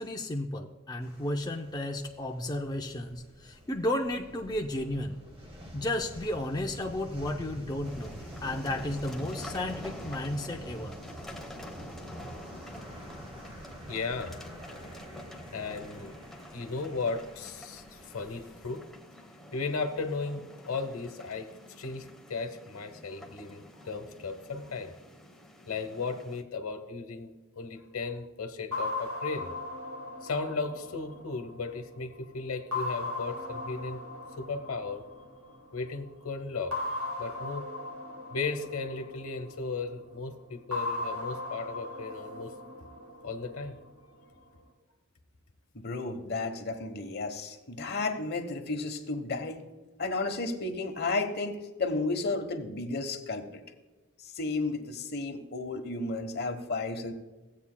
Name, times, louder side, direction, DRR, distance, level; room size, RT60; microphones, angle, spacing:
voice 1, 0.0-5.2 5.7-8.1 8.4-10.9, left 1 dB, 20° left, 1 dB, 0.5 m, -33 dB
sound 1, 1.0-18.9, equal, 25° right, 1.2 m, -47 dB
sound 2, 7.8-26.4, left 1 dB, ahead, 0.9 m, -48 dB
voice 2, 13.9-14.3 15.5-18.9 19.5-21.5 21.8-24.9 25.7-29.5 30.2-34.0 34.4-35.0 35.7-36.7 37.2-37.6 38.3-42.5 43.2-43.8, left 4 dB, 75° left, 7 dB, 1.0 m, -36 dB
sound 3, 28.7-32.0 32.7-35.6 36.7-39.8 40.7-43.8, left 2 dB, 80° right, 1.9 m, -37 dB
voice 3, 45.7-49.6 50.0-53.6 54.2-57.1, left 3 dB, 50° left, 5 dB, 1.0 m, -33 dB
16.0 x 8.3 x 2.2 m, 1.2 s
head